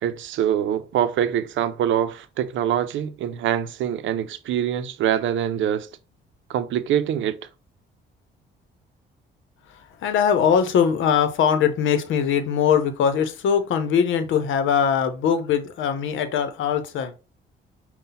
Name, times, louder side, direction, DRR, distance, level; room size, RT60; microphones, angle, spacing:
voice 1, 0.0-5.9 6.5-7.4, right 10 dB, 75° right, 0.6 m, -24 dB
voice 2, 9.7-17.1, left 7 dB, 75° left, 0.8 m, -21 dB
5.5 x 2.2 x 3.9 m
cardioid pair, 90°, 20 cm